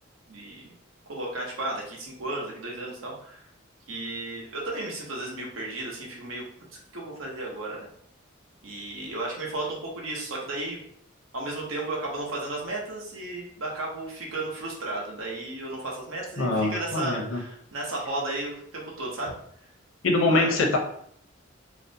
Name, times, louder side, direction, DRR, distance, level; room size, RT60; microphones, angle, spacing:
voice 1, 0.3-0.7 1.1-3.5 3.9-6.5 6.9-7.9 8.6-10.8 11.3-19.3 20.3-20.6, right 2 dB, 85° right, -2 dB, 0.8 m, -34 dB
voice 2, 16.4-17.4 20.0-20.8, left 2 dB, 75° left, 1 dB, 0.6 m, -23 dB
2.6 x 2.0 x 2.6 m, 0.65 s
head